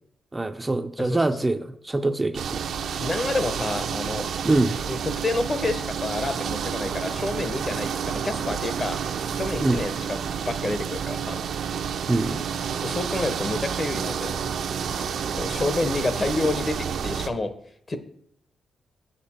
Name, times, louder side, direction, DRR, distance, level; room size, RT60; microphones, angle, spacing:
voice 1, 0.3-2.6 2.9-3.0 4.4-4.9 9.6-9.8 12.1-12.4, right 2 dB, 15° right, 6 dB, 0.4 m, -24 dB
sound 1, 2.3-17.3, right 7 dB, 75° right, 0.6 m, -30 dB
voice 2, 3.0-4.3 4.9-9.0 9.3-11.4 12.8-14.4 15.4-17.5 17.9-18.0, left 2 dB, 30° left, 10 dB, 0.8 m, -29 dB
7.7 x 6.7 x 4.3 m, 0.66 s
cardioid pair, 115°, 0 cm